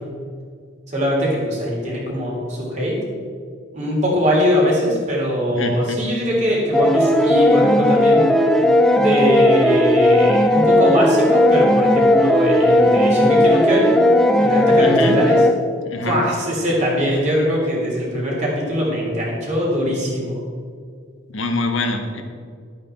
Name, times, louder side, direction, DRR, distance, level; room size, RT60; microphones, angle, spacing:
voice 1, 0.9-2.9 3.7-8.3 8.9-14.0 14.3-15.4 16.0-20.4, equal, 35° right, -4 dB, 3.2 m, -21 dB
voice 2, 5.5-6.0 14.8-15.2 15.8-16.2 21.3-22.2, left 2 dB, 75° left, 5 dB, 1.4 m, -24 dB
sound 1, 6.7-15.5, left 1 dB, ahead, 0.5 m, -15 dB
12.0 x 8.5 x 4.4 m, 2.2 s
head